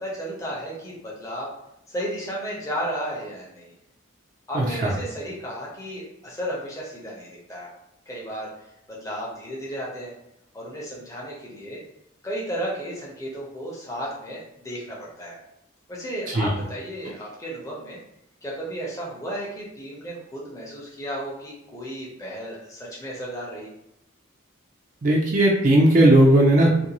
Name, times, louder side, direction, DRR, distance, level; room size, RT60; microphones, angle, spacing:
voice 1, 0.0-1.5 1.9-3.7 4.5-7.7 8.1-8.5 8.9-10.1 10.5-11.8 12.2-15.4 15.9-18.0 18.4-23.7, equal, 15° left, -5 dB, 0.6 m, -33 dB
voice 2, 4.5-4.9 16.3-16.5 25.0-26.9, right 1 dB, 40° right, -2 dB, 0.3 m, -17 dB
2.5 x 2.2 x 2.9 m, 0.79 s
head